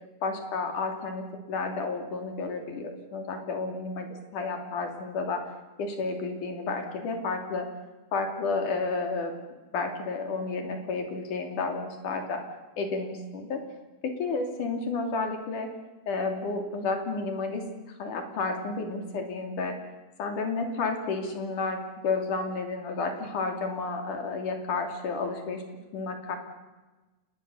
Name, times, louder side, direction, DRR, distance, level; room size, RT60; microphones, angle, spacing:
voice 1, 0.2-5.5 5.8-7.7 8.1-9.3 9.7-12.4 12.8-13.6 14.0-15.7 16.1-17.6 18.0-19.8 20.2-25.6 25.9-26.4, left 4 dB, 75° left, 4 dB, 4.5 m, -31 dB
27.5 x 20.0 x 7.1 m, 1.2 s
omnidirectional pair, 3.6 m